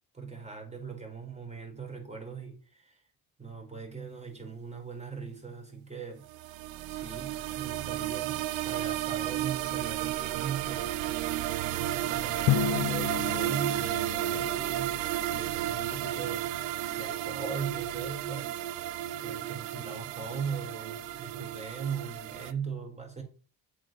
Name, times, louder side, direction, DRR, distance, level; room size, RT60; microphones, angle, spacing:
voice 1, 0.1-3.0 3.4-6.3 6.9-10.9 11.7-16.6 17.0-18.5 19.0-23.2, right 6 dB, 15° right, 4.4 m, -39 dB
sound 1, 6.3-22.5, right 13 dB, 70° right, 0.7 m, -33 dB
Drum, 12.5-15.1, left 17 dB, 55° left, 0.5 m, -32 dB
7.5 x 4.9 x 6.3 m
hypercardioid pair, 60°, 46 cm